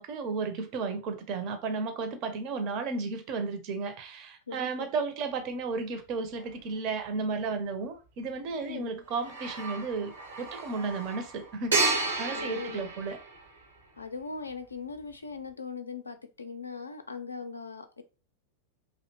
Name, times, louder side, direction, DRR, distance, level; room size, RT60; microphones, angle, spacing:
voice 1, 0.0-13.2, right 4 dB, 40° right, 0.5 m, -33 dB
voice 2, 4.5-4.9 8.6-8.9 12.3-12.9 14.0-18.0, left 5 dB, 80° left, 0.3 m, -40 dB
sound 1, 6.4-6.5 9.1-13.9, right 3 dB, 75° right, 0.7 m, -32 dB
2.6 x 2.1 x 2.8 m
figure-of-eight pair, 90°, 0 cm